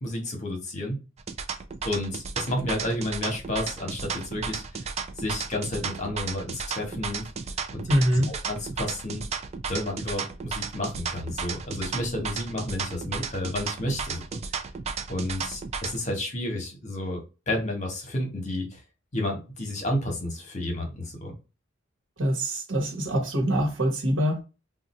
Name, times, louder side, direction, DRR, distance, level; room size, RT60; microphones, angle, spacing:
voice 1, 0.0-1.0 1.8-4.8 5.2-7.3 7.7-7.8 8.3-9.2 9.7-14.2 15.1-18.8 19.1-21.3, left 1 dB, 35° left, 1.1 m, -31 dB
sound 1, 1.2-16.0, right 5 dB, 30° right, 0.4 m, -34 dB
voice 2, 7.9-8.3 22.2-24.4, equal, 65° right, 1.2 m, -24 dB
2.6 x 2.4 x 4.1 m
head